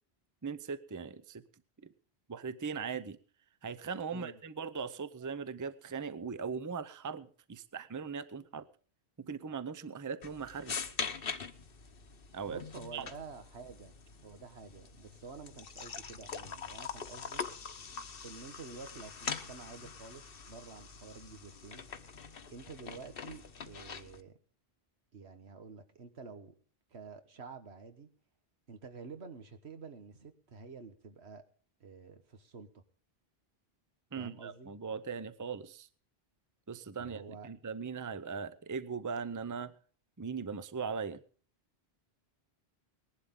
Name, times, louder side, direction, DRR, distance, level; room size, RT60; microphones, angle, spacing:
voice 1, 0.4-1.4 1.8-1.9 2.3-3.2 3.6-8.7 9.2-10.8 12.3-12.6 12.9-13.1 34.1-35.9 36.7-39.7 40.2-41.2, right 5 dB, 20° right, 14 dB, 0.6 m, -39 dB
sound 1, 10.2-24.2, left 6 dB, 60° left, 1.2 m, -43 dB
voice 2, 12.5-14.0 14.2-17.4 18.2-21.8 22.5-24.4 25.1-26.5 26.9-28.1 28.7-31.4 31.8-32.8 34.2-34.9 37.0-37.5, right 4 dB, 80° right, 9 dB, 1.7 m, -49 dB
19.5 x 11.5 x 3.7 m, 0.42 s
omnidirectional pair, 1.1 m